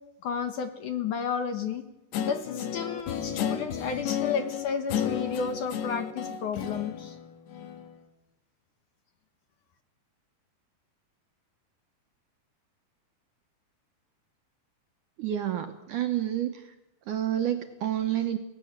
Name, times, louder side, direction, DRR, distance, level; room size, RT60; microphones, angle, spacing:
voice 1, 0.2-1.8 2.2-7.2, left 6 dB, 60° left, 8 dB, 2.3 m, -32 dB
Guitar, 2.1-7.9, left 9 dB, 80° left, 3.6 m, -33 dB
voice 2, 15.2-16.5 17.1-18.4, right 11 dB, 70° right, 6 dB, 2.0 m, -29 dB
28.5 x 18.5 x 7.5 m, 1.0 s
omnidirectional pair, 4.7 m